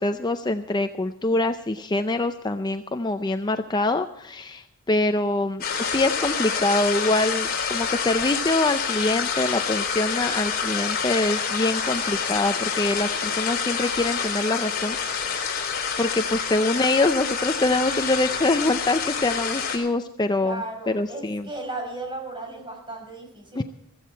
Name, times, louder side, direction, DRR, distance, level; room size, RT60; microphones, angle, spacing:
voice 1, 0.0-15.7 16.0-21.5 23.6-23.7, left 2 dB, 20° left, 8 dB, 0.5 m, -25 dB
sound 1, 5.6-19.8, left 6 dB, 45° left, 3.4 m, -27 dB
voice 2, 20.4-23.6, right 2 dB, 25° right, 1 dB, 5.2 m, -35 dB
16.0 x 15.0 x 4.5 m, 0.73 s
head